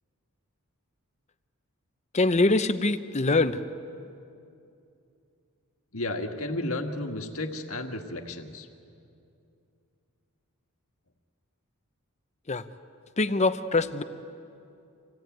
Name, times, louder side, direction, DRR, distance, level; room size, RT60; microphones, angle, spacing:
voice 1, 2.1-3.6 12.5-12.6 13.2-14.0, left 3 dB, 30° left, 11 dB, 0.7 m, -23 dB
voice 2, 5.9-8.7, left 2 dB, 70° left, 4 dB, 1.8 m, -33 dB
26.5 x 17.0 x 9.2 m, 2.6 s
head